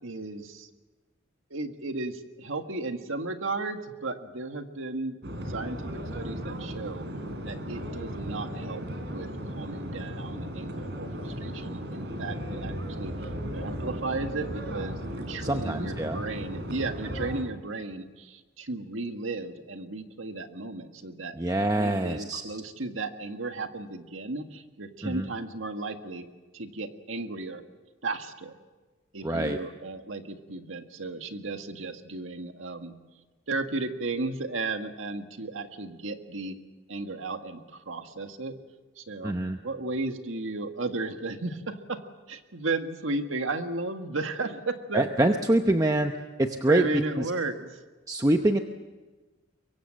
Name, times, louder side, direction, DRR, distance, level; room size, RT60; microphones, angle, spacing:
voice 1, 0.0-0.7 1.5-5.2 5.5-7.1 7.4-13.1 13.5-26.3 26.5-27.6 28.0-28.5 29.1-33.0 33.5-36.6 36.9-38.5 39.0-39.4 39.6-42.0 42.3-45.3 46.7-47.8, right 3 dB, 80° right, 6 dB, 1.7 m, -34 dB
sound 1, 5.2-17.4, equal, 60° right, 3.8 m, -36 dB
voice 2, 15.4-16.2 21.4-22.6 25.0-25.3 29.2-29.6 39.2-39.6 44.9-46.1 46.4-46.9 48.1-48.6, right 1 dB, 15° right, 5 dB, 0.8 m, -25 dB
24.0 x 22.5 x 7.6 m, 1.2 s
head